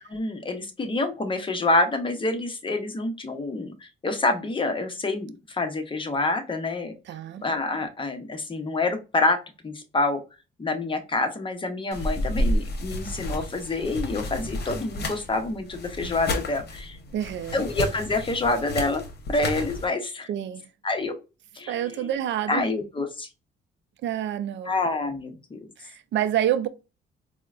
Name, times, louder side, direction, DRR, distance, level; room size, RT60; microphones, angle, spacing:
voice 1, 0.1-6.9 7.4-9.4 9.6-10.2 10.6-17.0 17.5-19.0 19.3-20.3 20.8-21.2 21.5-22.1 22.5-23.3 24.6-25.6, left 2 dB, 25° left, 0.8 m, -27 dB
voice 2, 7.1-7.4 17.1-17.6 20.3-20.6 21.7-22.6 24.0-24.7 25.8-26.7, right 11 dB, 65° right, 0.4 m, -28 dB
sound 1, 11.9-19.9, left 1 dB, 55° left, 0.9 m, -31 dB
4.3 x 2.1 x 2.4 m
cardioid pair, 90°, 20 cm